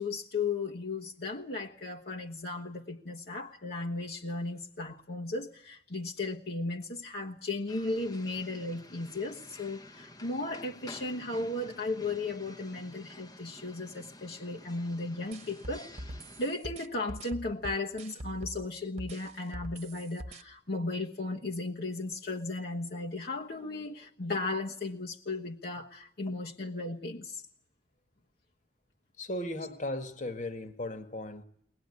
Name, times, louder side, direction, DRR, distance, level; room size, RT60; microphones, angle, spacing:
voice 1, 0.0-15.9 16.4-27.4, left 2 dB, 60° left, 1.3 m, -35 dB
sound 1, 7.7-16.5, left 2 dB, 25° left, 1.0 m, -51 dB
sound 2, 15.3-18.6 19.0-20.4, equal, 40° right, 1.2 m, -42 dB
voice 2, 29.2-31.4, left 1 dB, 45° left, 1.7 m, -36 dB
22.0 x 19.5 x 9.7 m
head